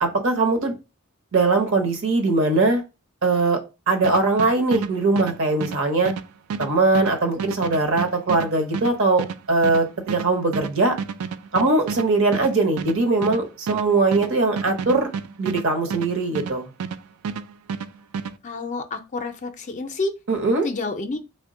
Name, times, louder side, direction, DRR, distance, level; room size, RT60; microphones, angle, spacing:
voice 1, 0.0-0.7 1.3-2.8 3.2-3.6 3.9-6.1 6.6-10.9 11.5-15.1 15.4-16.7 20.3-20.7, right 3 dB, 60° right, 0.8 m, -21 dB
sound 1, 4.0-17.0 17.2-18.3, right 6 dB, 80° right, 0.4 m, -31 dB
voice 2, 18.4-20.1 20.6-21.2, left 3 dB, 35° left, 0.4 m, -29 dB
3.4 x 2.1 x 3.7 m
head